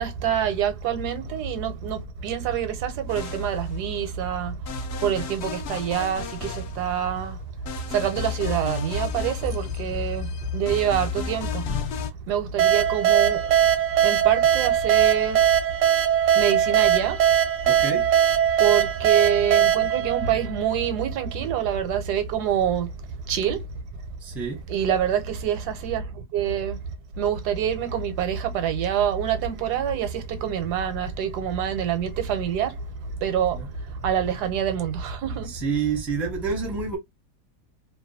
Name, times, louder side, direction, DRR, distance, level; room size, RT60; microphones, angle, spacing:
voice 1, 0.0-11.8 12.3-15.6 16.3-17.3 18.6-23.8 24.7-35.6, right 9 dB, 85° right, 1.2 m, -26 dB
sound 1, 3.1-4.0 4.7-7.2 7.7-12.1, left 7 dB, 85° left, 0.5 m, -32 dB
sound 2, 12.6-21.0, right 10 dB, 70° right, 0.7 m, -20 dB
voice 2, 17.7-18.1 24.2-24.7 33.5-33.7 35.4-37.0, right 5 dB, ahead, 0.4 m, -28 dB
2.8 x 2.3 x 2.6 m
omnidirectional pair, 1.7 m